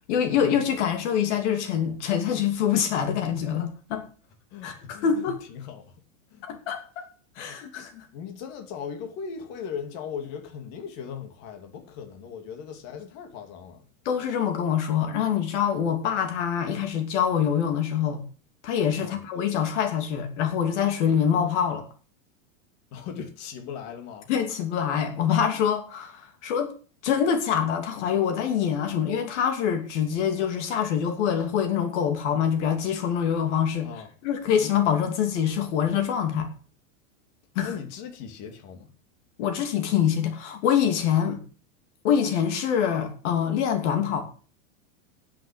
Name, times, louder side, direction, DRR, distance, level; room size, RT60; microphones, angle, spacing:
voice 1, 0.1-4.0 4.6-5.4 6.4-7.1 7.4-8.1 14.0-18.2 18.6-21.8 24.3-26.7 27.0-33.9 34.2-36.5 37.5-37.7 39.4-41.4 42.0-44.2, left 8 dB, 60° left, 2.8 m, -25 dB
voice 2, 4.5-5.1 5.5-5.9 6.3-6.5 7.4-7.6 8.1-13.9 19.0-19.2 22.9-24.3 33.8-34.1 37.6-38.9, left 7 dB, 40° left, 2.7 m, -38 dB
9.3 x 8.0 x 8.6 m
supercardioid pair, 155°, 40 cm